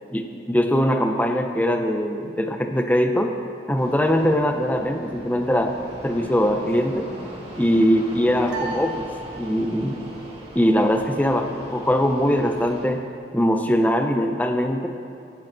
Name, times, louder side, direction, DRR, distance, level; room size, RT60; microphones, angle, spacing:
voice 1, 0.1-3.3 3.7-5.8 6.0-7.1 7.6-9.1 9.4-10.0 10.5-13.0 13.3-14.9, equal, 10° left, 5 dB, 0.7 m, -21 dB
Fixed-wing aircraft airplane, 3.8-12.8, equal, 30° right, 2.3 m, -40 dB
sound 1, 8.5-10.0, right 3 dB, 70° right, 2.4 m, -35 dB
17.0 x 12.0 x 4.1 m, 2.4 s
head